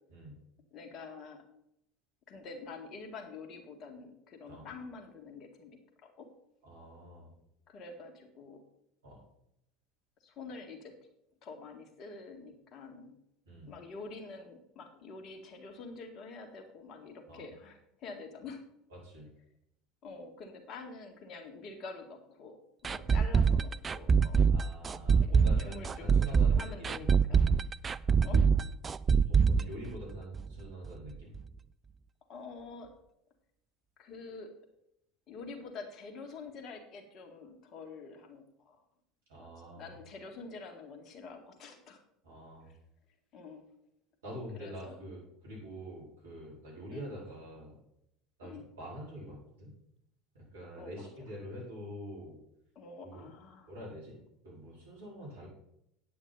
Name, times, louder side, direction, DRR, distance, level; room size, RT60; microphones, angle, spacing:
voice 1, 0.7-1.4 2.3-6.3 7.7-8.6 10.2-11.1 11.4-13.2 13.7-18.6 20.0-24.4 25.2-27.4 28.2-28.5 29.8-29.9 32.3-32.9 34.0-34.5 35.3-38.8 39.4-39.5 39.8-42.0 42.7-42.8 43.3-43.7 44.5-45.0 46.9-47.1 48.4-48.6 50.8-51.1 52.8-53.7, left 4 dB, 45° left, 5 dB, 1.9 m, -47 dB
voice 2, 6.6-7.3 9.0-9.2 13.4-13.7 17.3-17.4 18.9-19.3 24.5-27.2 29.3-31.3 39.3-39.9 42.2-42.7 44.2-47.8 48.4-49.7 50.3-52.4 53.0-53.3 53.7-55.5, equal, 75° right, -4 dB, 4.6 m, -46 dB
sound 1, 22.8-30.6 30.8-30.9 31.3-31.4, right 6 dB, 30° right, 0.4 m, -25 dB
9.4 x 8.6 x 4.1 m, 0.77 s
figure-of-eight pair, 70°, 0 cm